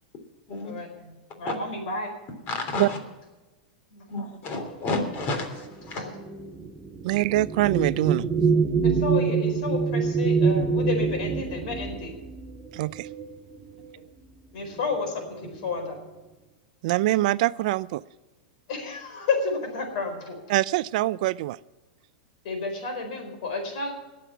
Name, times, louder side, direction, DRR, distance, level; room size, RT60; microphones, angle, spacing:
voice 1, 0.6-2.1 3.9-4.1 6.0-6.2 8.8-12.2 14.5-16.0 18.7-20.4 22.4-23.9, left 4 dB, 65° left, 5 dB, 4.5 m, -31 dB
voice 2, 2.5-3.0 4.1-6.0, left 3 dB, 40° left, 6 dB, 3.2 m, -30 dB
sound 1, 5.0-13.9 14.8-14.9 15.3-15.9, right 5 dB, 15° right, 0.8 m, -26 dB
voice 3, 7.0-8.2 12.7-13.1 16.8-18.0 20.5-21.6, right 17 dB, 60° right, 19 dB, 0.3 m, -24 dB
20.0 x 7.5 x 5.8 m, 1.1 s
hypercardioid pair, 130°, 5 cm